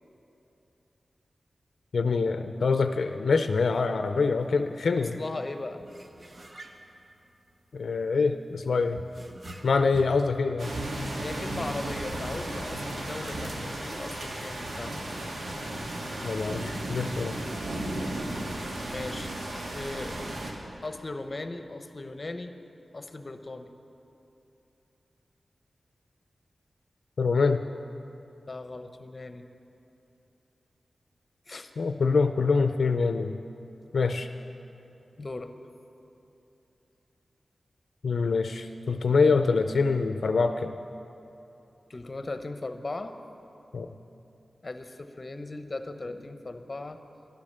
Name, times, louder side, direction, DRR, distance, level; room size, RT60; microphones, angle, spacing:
voice 1, 1.9-5.2 7.7-9.0 9.6-10.7 16.2-17.4 27.2-27.6 31.8-33.4 33.9-34.3 38.0-40.7 43.7-43.9, left 4 dB, 80° left, 8 dB, 0.5 m, -25 dB
sound 1, 4.4-4.5 4.8-5.0 5.8-7.9 8.8-10.4, equal, 45° right, 1.1 m, -46 dB
voice 2, 5.1-5.8 11.2-15.0 18.9-19.4 19.7-20.2 20.8-22.5 22.9-23.7 28.5-29.4 31.5-31.7 35.2-35.5 41.9-43.1 44.6-47.0, left 2 dB, 40° left, 8 dB, 0.8 m, -38 dB
sound 2, 10.6-20.5, right 1 dB, 85° right, 1.9 m, -34 dB
12.0 x 11.5 x 6.6 m, 2.9 s
wide cardioid pair, 90°, 0 cm